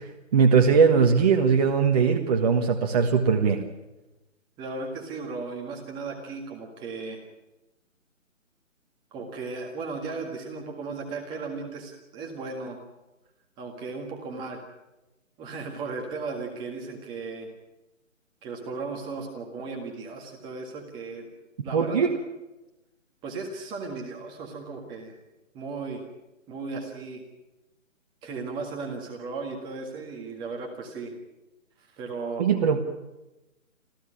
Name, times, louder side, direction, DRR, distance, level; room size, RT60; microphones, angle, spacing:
voice 1, 0.3-3.6 21.7-22.2 32.4-32.8, right 6 dB, 30° right, 4 dB, 1.4 m, -20 dB
voice 2, 4.6-7.2 9.1-12.8 13.6-14.6 15.4-17.5 18.4-21.3 21.6-22.1 23.2-25.2 25.5-26.0 26.5-27.2 28.2-31.1 31.8-32.5, right 4 dB, 10° right, 2 dB, 1.7 m, -36 dB
27.0 x 15.5 x 8.7 m, 1.0 s
hypercardioid pair, 155°, 41 cm